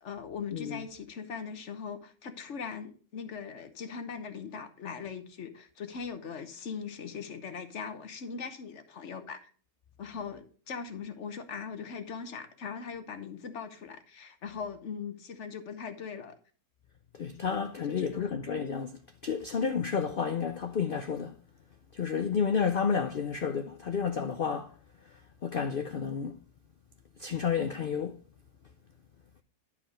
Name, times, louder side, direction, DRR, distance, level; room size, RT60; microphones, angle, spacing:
voice 1, 0.0-9.5 10.0-16.4 17.8-18.3, left 6 dB, 50° left, 1.2 m, -40 dB
voice 2, 0.5-0.8 17.1-21.3 21.9-24.7 25.4-26.4 27.2-28.2, left 6 dB, 80° left, 0.4 m, -31 dB
11.0 x 4.8 x 5.0 m
omnidirectional pair, 1.7 m